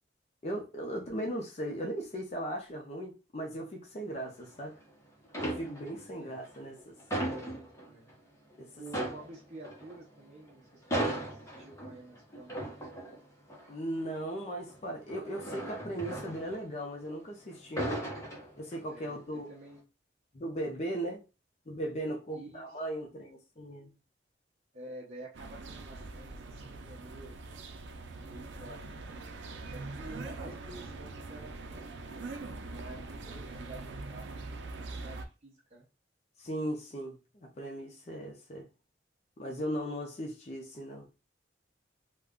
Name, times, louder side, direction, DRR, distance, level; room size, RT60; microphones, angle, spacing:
voice 1, 0.4-4.7 5.4-7.0 8.6-8.8 13.7-18.1 18.6-19.5 20.3-21.2 21.7-23.9 36.4-38.7 39.4-41.2, right 1 dB, 35° left, 0.5 m, -38 dB
sound 1, 4.2-4.9 5.2-6.1 6.4-8.2 8.5-8.6 8.9-17.2 17.5-19.0 19.4-19.7, right 1 dB, 15° left, 0.8 m, -38 dB
voice 2, 7.2-8.1 8.8-12.6 18.9-19.8 22.3-22.8 24.7-27.4 28.3-35.9, right 2 dB, 35° right, 0.6 m, -50 dB
sound 2, 25.3-35.3, right 3 dB, 75° right, 0.4 m, -43 dB
2.4 x 2.2 x 3.5 m
head